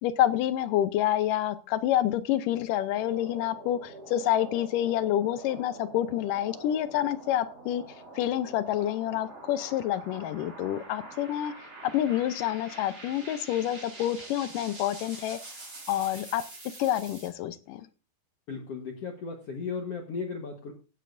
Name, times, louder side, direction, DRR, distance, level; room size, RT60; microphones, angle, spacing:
voice 1, 0.0-7.8 8.2-11.5 11.8-15.4 15.9-16.4 16.8-17.9, left 12 dB, 75° left, 12 dB, 2.1 m, -28 dB
sound 1, 2.7-17.3, right 2 dB, 25° right, 3.6 m, -45 dB
voice 2, 18.5-20.7, left 5 dB, 60° left, 2 dB, 1.8 m, -35 dB
16.5 x 9.9 x 2.6 m, 0.33 s
omnidirectional pair, 4.3 m